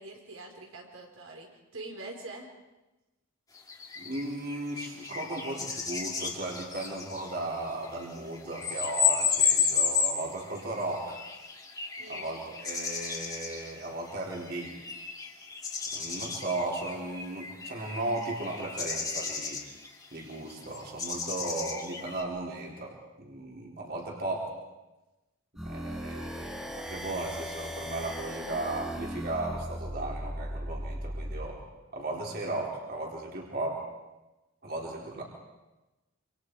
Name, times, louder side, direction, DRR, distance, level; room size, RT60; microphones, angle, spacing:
voice 1, 0.0-2.5 12.0-12.2, right 2 dB, 75° right, 0 dB, 4.5 m, -44 dB
sound 1, 3.5-22.2, left 6 dB, 15° left, 2.4 m, -33 dB
voice 2, 4.0-11.2 12.1-14.7 15.9-19.6 20.1-24.5 25.6-31.6 31.9-33.8 34.6-35.2, right 2 dB, 45° right, -2 dB, 4.3 m, -36 dB
sound 2, 25.6-31.5, equal, ahead, 1.8 m, -37 dB
27.5 x 27.0 x 4.9 m, 1.1 s
head